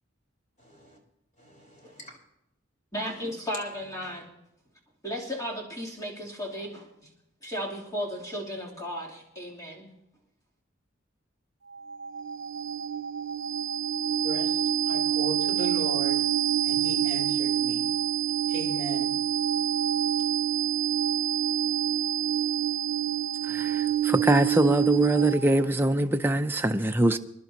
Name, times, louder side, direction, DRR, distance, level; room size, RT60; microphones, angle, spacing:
voice 1, 0.6-1.0 1.4-2.1 4.1-4.2 14.2-16.2 16.6-17.9 18.5-19.1, right 1 dB, 40° left, 4.1 m, -37 dB
voice 2, 2.9-4.4 5.0-6.9 7.4-9.9, equal, 20° left, 3.1 m, -35 dB
sound 1, 11.7-25.6, right 10 dB, 70° right, 0.6 m, -27 dB
voice 3, 23.4-27.2, right 1 dB, 10° right, 0.5 m, -23 dB
27.0 x 11.0 x 2.9 m
head